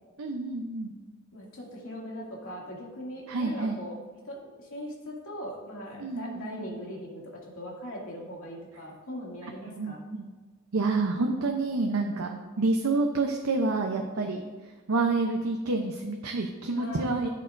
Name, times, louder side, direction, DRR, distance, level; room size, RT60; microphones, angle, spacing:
voice 1, 0.2-0.9 3.3-3.8 6.0-6.8 9.8-10.3 10.7-14.4 14.9-17.3, right 3 dB, 85° right, 3 dB, 0.7 m, -28 dB
voice 2, 1.3-4.0 4.3-10.1 16.7-17.3, left 1 dB, 75° left, -3 dB, 2.3 m, -40 dB
15.0 x 6.6 x 2.6 m, 1.4 s
head